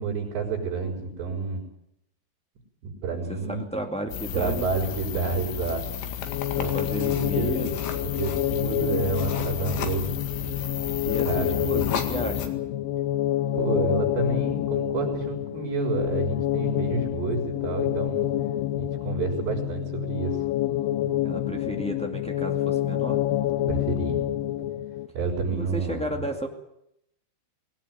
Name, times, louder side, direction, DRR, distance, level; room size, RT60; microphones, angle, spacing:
voice 1, 0.0-1.7 2.8-3.6 4.3-5.8 6.2-6.3 6.6-7.7 8.0-10.2 11.0-11.8 13.5-18.3 18.8-20.4 23.7-24.2 25.1-26.3, right 4 dB, 85° right, -4 dB, 6.7 m, -29 dB
voice 2, 3.3-4.7 6.5-8.0 11.0-12.5 21.2-23.2 25.5-26.5, right 1 dB, 5° left, 2 dB, 0.4 m, -33 dB
sound 1, 4.1-12.5, left 8 dB, 90° left, 4.3 m, -33 dB
sound 2, 6.3-25.1, left 12 dB, 70° left, 2.4 m, -28 dB
20.0 x 18.0 x 9.3 m, 0.77 s
omnidirectional pair, 4.9 m